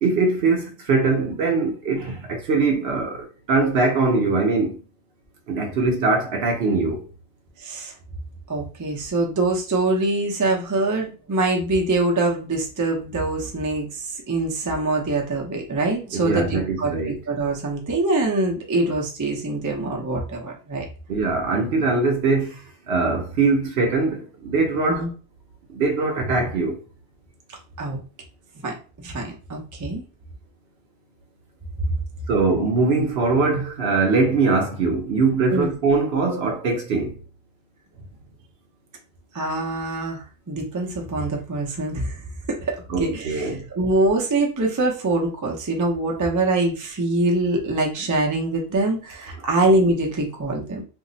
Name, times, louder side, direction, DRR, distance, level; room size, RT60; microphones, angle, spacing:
voice 1, 0.0-4.8 5.5-7.1 16.1-17.2 21.1-25.1 25.7-26.8 32.3-37.2 42.9-43.6, right 3 dB, 60° right, 0.7 m, -22 dB
voice 2, 7.6-7.9 8.5-20.9 24.9-25.1 27.5-28.0 28.6-28.8 29.0-30.0 31.9-32.0 35.5-35.7 39.3-50.8, right 2 dB, 30° right, 0.3 m, -24 dB
2.6 x 2.0 x 3.8 m
omnidirectional pair, 1.4 m